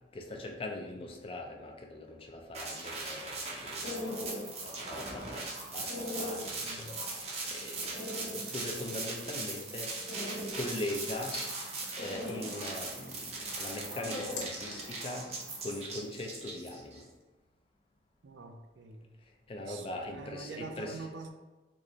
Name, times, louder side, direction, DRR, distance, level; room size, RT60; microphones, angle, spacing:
voice 1, 0.1-4.4 4.6-11.4 12.0-15.3 15.6-17.0 19.5-21.1, left 1 dB, 30° left, 2 dB, 0.4 m, -41 dB
sound 1, 2.5-17.0, right 3 dB, 35° right, 0.5 m, -40 dB
sound 2, 3.6-15.7, left 1 dB, 80° left, 0.9 m, -43 dB
voice 2, 6.6-6.9 18.2-19.1 19.6-21.3, right 3 dB, 90° right, 5 dB, 0.4 m, -45 dB
3.6 x 2.5 x 3.0 m, 1.2 s
head